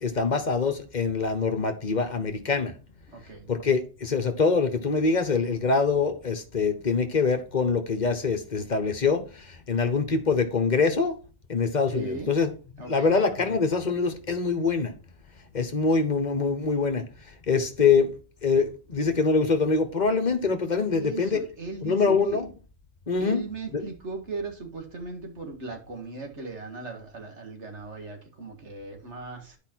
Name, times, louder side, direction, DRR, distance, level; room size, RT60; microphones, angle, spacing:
voice 1, 0.0-2.7 3.5-11.1 11.5-12.5 12.9-14.9 15.5-18.1 18.4-21.4 21.8-22.5 23.1-23.4 23.7-23.8, left 4 dB, 40° left, 1.1 m, -24 dB
voice 2, 3.1-3.5 11.9-12.3 12.8-13.1 21.0-22.4 23.2-29.6, right 3 dB, 65° right, 2.1 m, -38 dB
10.5 x 4.9 x 4.5 m
omnidirectional pair, 1.3 m